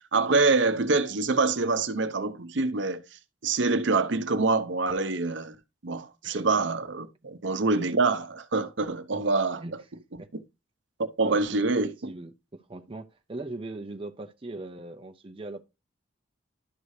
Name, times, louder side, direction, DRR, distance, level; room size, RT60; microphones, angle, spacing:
voice 1, 0.1-3.0 3.4-5.5 5.8-9.6 11.2-12.1, right 3 dB, 70° right, 0.8 m, -25 dB
voice 2, 11.2-15.6, right 2 dB, 30° right, 0.6 m, -40 dB
12.0 x 4.8 x 2.7 m
head